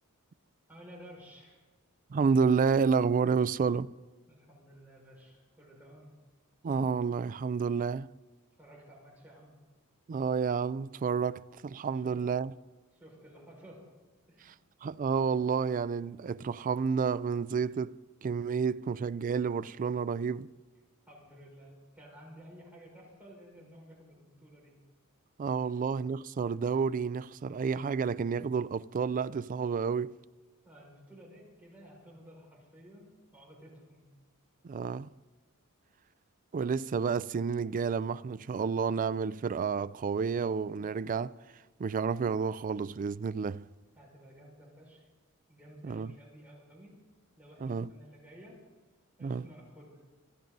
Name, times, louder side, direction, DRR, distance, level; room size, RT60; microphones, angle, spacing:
voice 1, 0.7-1.6 4.3-6.1 8.6-9.6 11.9-12.2 12.9-13.9 14.3-14.5 21.1-24.8 25.7-25.8 30.6-34.1 43.9-45.1 45.5-47.0 47.4-48.6 49.2-50.0, equal, 10° right, 5.6 m, -53 dB
voice 2, 2.1-3.9 6.6-8.1 10.1-12.5 14.8-20.5 25.4-30.2 34.6-35.1 36.5-41.4 41.8-43.7 45.9-46.1 47.6-47.9 49.2-49.4, right 5 dB, 40° right, 0.3 m, -30 dB
26.5 x 10.5 x 4.0 m
head